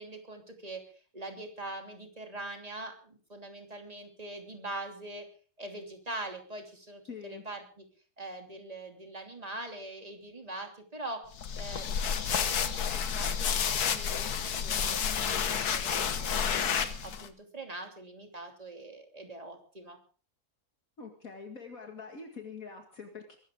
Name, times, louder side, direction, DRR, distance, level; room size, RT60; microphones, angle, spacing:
voice 1, 0.0-5.2 5.6-7.8 8.2-11.2 11.6-16.7 17.0-20.0, right 2 dB, 25° right, 3 dB, 3.0 m, -43 dB
voice 2, 7.1-7.4 21.0-23.4, left 5 dB, 65° left, 3 dB, 2.5 m, -44 dB
sound 1, 11.4-17.3, left 7 dB, 85° left, 1.7 m, -30 dB
23.0 x 13.5 x 3.7 m, 0.39 s
omnidirectional pair, 1.6 m